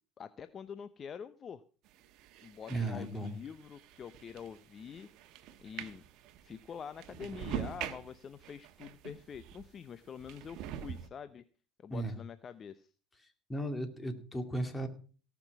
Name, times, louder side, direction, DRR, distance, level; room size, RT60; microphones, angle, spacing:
voice 1, 0.2-1.6 2.4-5.1 5.6-6.0 6.4-11.4 11.8-12.9, left 7 dB, 40° left, 13 dB, 0.6 m, -46 dB
sound 1, 1.9-9.7 10.2-11.1, right 10 dB, 65° right, 1.1 m, -45 dB
voice 2, 2.7-3.3 11.9-12.2 13.5-14.9, right 1 dB, 15° left, 7 dB, 2.5 m, -35 dB
17.5 x 6.0 x 5.9 m, 0.40 s
supercardioid pair, 85°, 0 cm